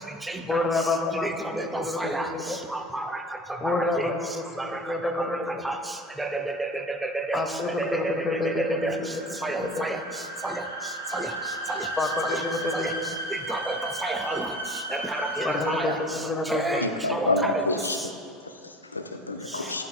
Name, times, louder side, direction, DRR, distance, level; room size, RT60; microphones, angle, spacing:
voice 1, 0.5-1.3 1.6-2.6 3.6-5.6 7.3-9.2 9.6-9.8 12.0-13.0 15.4-16.8, left 2 dB, 20° left, 4 dB, 0.8 m, -28 dB
voice 2, 1.2-2.3 2.9-3.0 3.6-3.8 4.6-4.7 5.2-5.3 5.6-5.7 6.2-6.7 7.1-7.4 7.8-7.9 8.4-8.9 9.4-10.0 10.4-10.5 11.1-11.3 13.5-13.7 14.0-14.5 14.9-16.0 16.5-16.8 17.1-17.6, right 2 dB, 10° right, 5 dB, 0.5 m, -30 dB
sound 1, 5.9-16.4, right 1 dB, 90° right, 0.7 m, -36 dB
voice 3, 16.7-18.1 18.4-19.9, left 2 dB, 85° left, 5 dB, 0.4 m, -28 dB
11.5 x 5.5 x 2.3 m, 2.3 s
figure-of-eight pair, 70°, 0 cm